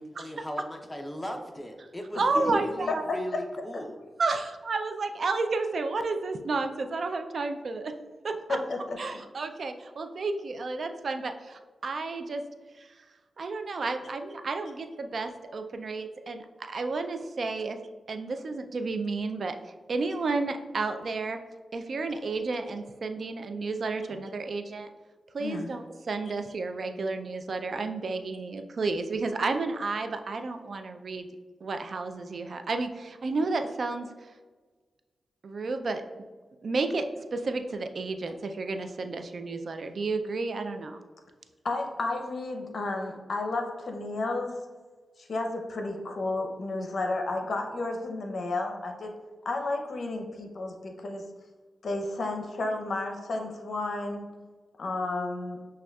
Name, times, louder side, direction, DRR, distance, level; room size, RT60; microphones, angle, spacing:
voice 1, 0.0-4.0, left 1 dB, 10° left, 3 dB, 0.6 m, -37 dB
voice 2, 2.1-3.0 4.2-7.9 8.2-8.3 9.0-12.4 12.8-13.0 13.4-17.8 18.1-19.6 19.9-21.4 21.7-24.9 25.3-31.3 31.6-34.3 35.4-36.0 36.6-37.0 37.3-41.0, right 3 dB, 65° right, 7 dB, 0.3 m, -31 dB
voice 3, 8.5-9.2 25.4-25.8 41.6-44.6 45.2-49.1 49.4-51.2 51.8-54.3 54.8-55.6, left 2 dB, 65° left, 3 dB, 0.6 m, -32 dB
6.0 x 2.3 x 2.3 m, 1.4 s
cardioid pair, 55°, 0 cm